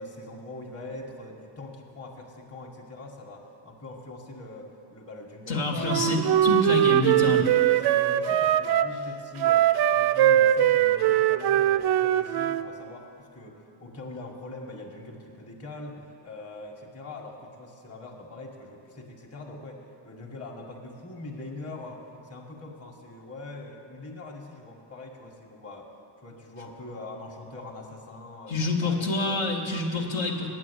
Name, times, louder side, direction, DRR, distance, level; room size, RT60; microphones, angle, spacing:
voice 1, 0.0-6.3 6.7-25.9 26.2-29.4, left 2 dB, 30° left, 0 dB, 1.6 m, -42 dB
voice 2, 5.5-7.4 28.5-30.5, left 2 dB, 65° left, 0 dB, 1.8 m, -27 dB
Wind instrument woodwind instrument, 5.8-8.9 9.4-12.6, right 11 dB, 55° right, 0.5 m, -21 dB
8.9 x 8.6 x 8.3 m, 2.8 s
supercardioid pair, 80°, 49 cm